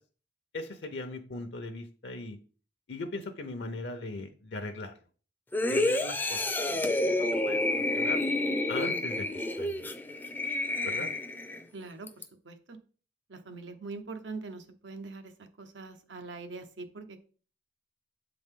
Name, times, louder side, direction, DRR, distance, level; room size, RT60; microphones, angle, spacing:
voice 1, 0.5-2.4 2.9-4.9 5.7-6.4 6.7-8.2 8.7-9.9 10.8-11.1, left 2 dB, 70° left, 6 dB, 0.7 m, -39 dB
sound 1, 5.5-11.6 12.1-12.2, left 2 dB, 10° left, 0.4 m, -29 dB
voice 2, 10.8-11.1 11.7-12.1 12.4-12.8 13.3-15.3 15.6-17.2, right 3 dB, 85° right, 7 dB, 0.9 m, -43 dB
7.9 x 3.9 x 3.7 m, 0.40 s
head